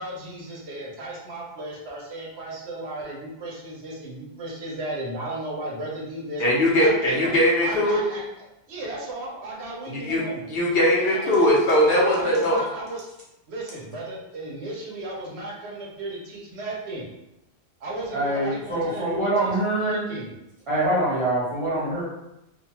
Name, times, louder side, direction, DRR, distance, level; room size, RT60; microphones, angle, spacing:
voice 1, 0.0-7.3 7.6-8.2 8.7-10.4 11.0-11.5 11.9-13.1 13.5-17.0 17.8-20.3, right 2 dB, 80° right, -3 dB, 1.0 m, -35 dB
voice 2, 6.4-8.0 9.9-10.2 10.5-12.6, left 1 dB, 65° left, -3 dB, 0.9 m, -20 dB
voice 3, 18.1-20.0 20.7-22.0, right 1 dB, 30° right, -7 dB, 1.0 m, -24 dB
2.6 x 2.3 x 2.8 m, 0.89 s
omnidirectional pair, 1.1 m